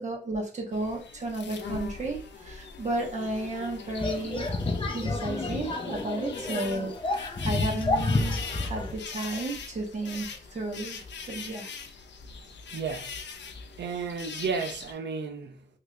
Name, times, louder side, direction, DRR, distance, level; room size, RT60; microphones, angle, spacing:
voice 1, 0.0-4.5 4.9-11.0 11.3-11.7, right 2 dB, 40° right, 0.9 m, -33 dB
sound 1, 0.7-14.9, left 5 dB, 90° left, 0.5 m, -42 dB
sound 2, 4.0-9.0, left 2 dB, 30° left, 0.5 m, -30 dB
voice 2, 12.7-13.2 13.8-15.7, right 5 dB, 80° right, 0.6 m, -33 dB
3.2 x 3.0 x 2.4 m
wide cardioid pair, 165°, 18 cm